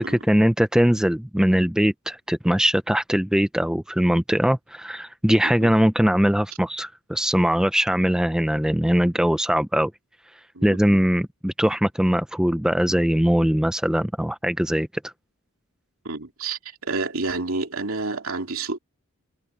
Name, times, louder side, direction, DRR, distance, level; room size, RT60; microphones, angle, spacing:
voice 1, 0.0-9.9 10.6-15.1, equal, 5° right, 0.4 m, -21 dB
voice 2, 5.4-5.7 10.5-10.8 16.0-18.8, right 3 dB, 70° right, 2.9 m, -29 dB
head